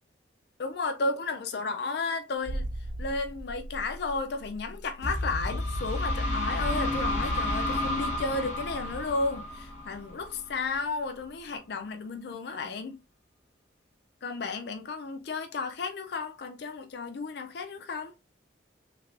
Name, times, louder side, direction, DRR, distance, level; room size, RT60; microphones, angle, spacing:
voice 1, 0.6-2.7 3.0-13.0 14.2-18.1, left 3 dB, 60° left, 0.4 m, -33 dB
sound 1, 2.4-10.8 11.1-11.3, right 1 dB, 45° right, 0.3 m, -41 dB
sound 2, 5.0-10.7, left 1 dB, 40° left, 1.2 m, -31 dB
3.3 x 3.3 x 2.5 m
head